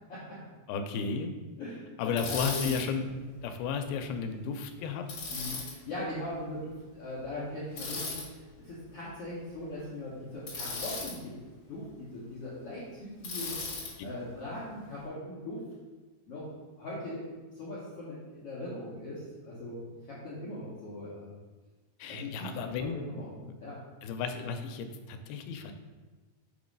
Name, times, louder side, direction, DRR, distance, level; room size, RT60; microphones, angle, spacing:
voice 1, 0.7-1.3 2.0-3.1 3.4-5.0 22.0-23.0 24.0-25.7, left 6 dB, 85° left, 6 dB, 2.5 m, -33 dB
voice 2, 1.6-2.7 5.3-11.3 11.7-13.6 14.0-15.6 16.2-16.5 16.8-21.3 22.1-23.7, left 1 dB, 70° left, -8 dB, 1.4 m, -40 dB
Bicycle, 2.2-2.8 5.1-5.7 7.8-8.2 10.5-11.1 13.2-13.9, left 3 dB, 50° left, 2.5 m, -36 dB
6.7 x 3.1 x 5.2 m, 1.3 s
omnidirectional pair, 4.3 m